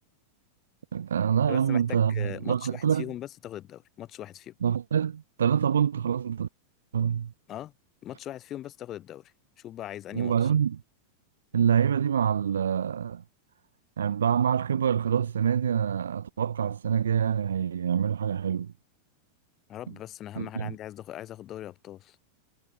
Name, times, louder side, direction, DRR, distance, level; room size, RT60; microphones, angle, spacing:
voice 1, 0.9-3.0 4.6-6.5 6.9-7.3 10.1-10.8 11.5-13.2 14.0-18.7 20.4-20.7, right 8 dB, 65° right, 0.6 m, -26 dB
voice 2, 1.5-4.5 7.5-7.7 8.0-10.5 19.7-22.2, left 12 dB, 30° left, 3.4 m, -40 dB
figure-of-eight pair, 90°, 0 cm